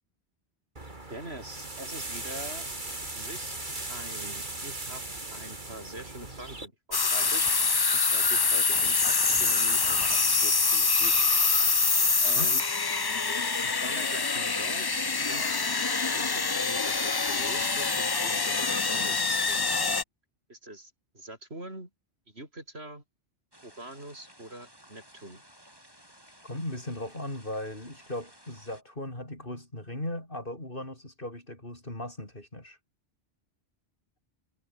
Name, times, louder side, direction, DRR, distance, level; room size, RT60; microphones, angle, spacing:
Leaves Rustling Edited, 0.8-6.7, right 2 dB, 45° right, 3.7 m, -38 dB
voice 1, 1.1-2.7 3.1-3.6 3.9-5.0 5.3-7.5 7.9-11.3 12.2-12.6 13.3-15.9 16.1-19.6 20.5-21.9 22.3-23.0 23.6-25.4, right 1 dB, 65° right, 6.4 m, -44 dB
sound 1, 6.9-20.0, left 4 dB, 25° left, 0.6 m, -25 dB
sound 2, 23.5-28.8, equal, 20° right, 7.6 m, -56 dB
voice 2, 26.4-32.8, left 1 dB, 50° left, 7.0 m, -37 dB
omnidirectional pair, 1.2 m